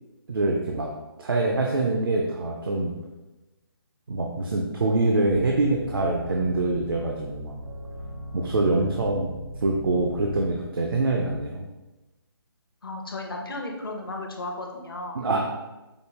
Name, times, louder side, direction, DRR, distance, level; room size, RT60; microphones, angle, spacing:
voice 1, 0.3-0.9 1.2-2.9 4.1-7.5 8.3-9.3 9.6-11.7 15.1-15.4, right 2 dB, 65° right, 0 dB, 0.5 m, -24 dB
sound 1, 5.3-10.6, equal, 90° right, 0.9 m, -38 dB
voice 2, 12.8-15.2, left 2 dB, 65° left, 2 dB, 0.7 m, -34 dB
5.1 x 2.2 x 3.1 m, 1.1 s
figure-of-eight pair, 145°, 13 cm